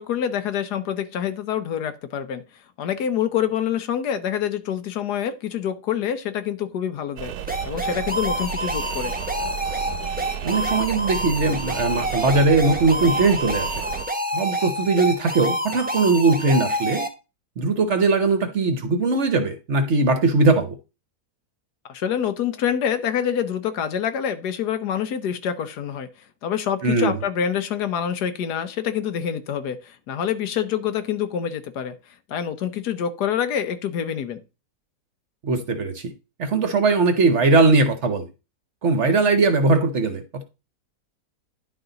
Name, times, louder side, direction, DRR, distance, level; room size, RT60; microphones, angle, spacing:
voice 1, 0.0-2.4 2.8-7.3 7.6-9.1 21.9-26.1 26.4-32.0 32.3-34.4, left 9 dB, 75° left, 1.4 m, -26 dB
sound 1, 7.2-14.1, right 10 dB, 75° right, 1.2 m, -33 dB
sound 2, 7.5-17.1, equal, 5° right, 0.8 m, -28 dB
voice 2, 10.4-13.7 14.3-17.0 17.6-20.8 26.8-27.2 35.4-36.1 36.4-38.3 38.8-40.4, right 3 dB, 50° right, 1.1 m, -20 dB
10.5 x 4.1 x 3.9 m
omnidirectional pair, 1.8 m